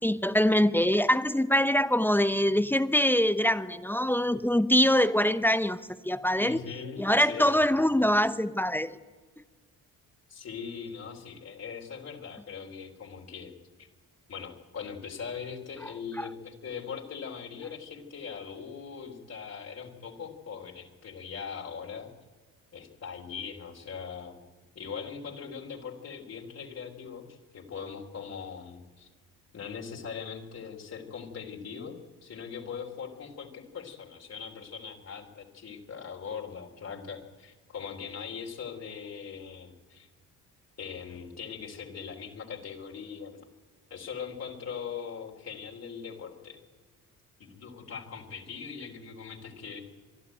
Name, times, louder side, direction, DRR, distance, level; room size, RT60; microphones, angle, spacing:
voice 1, 0.0-5.8 6.0-6.6 7.0-9.0 16.2-16.3, left 1 dB, 5° left, 12 dB, 0.8 m, -24 dB
voice 2, 6.4-7.6 10.3-13.5 13.8-13.9 14.3-22.1 22.7-24.4 24.8-29.1 29.5-40.1 40.8-43.4 43.9-46.6 47.4-49.8, left 6 dB, 50° left, 0 dB, 3.4 m, -41 dB
26.0 x 11.5 x 9.1 m, 1.4 s
cardioid pair, 100°, 33 cm